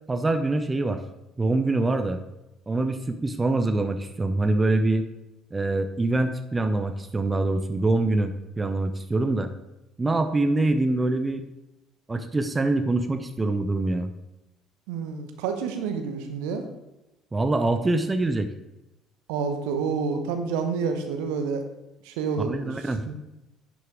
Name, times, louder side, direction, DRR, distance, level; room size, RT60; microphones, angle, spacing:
voice 1, 0.1-1.0 1.4-2.2 2.7-5.1 5.5-9.5 10.0-11.4 12.1-14.1 17.3-18.5 22.4-23.0, right 2 dB, 20° right, 8 dB, 0.7 m, -24 dB
voice 2, 14.9-16.6 19.3-21.6 22.0-22.7 23.1-23.2, right 5 dB, 65° right, 7 dB, 0.9 m, -28 dB
10.5 x 6.1 x 3.6 m, 0.95 s
figure-of-eight pair, 55°, 0 cm